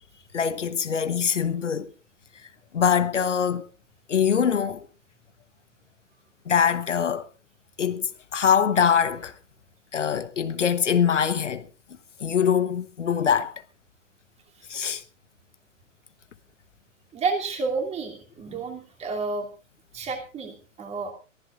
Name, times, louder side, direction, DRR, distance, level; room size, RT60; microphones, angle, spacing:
voice 1, 0.3-1.9 2.7-3.7 4.1-4.9 6.5-7.3 7.8-9.3 9.9-11.7 12.2-13.5 14.7-15.0, left 7 dB, 70° left, 1.2 m, -23 dB
voice 2, 17.1-19.5 19.9-21.1, right 4 dB, 15° right, 2.9 m, -30 dB
23.0 x 15.0 x 2.5 m
figure-of-eight pair, 115°, 38 cm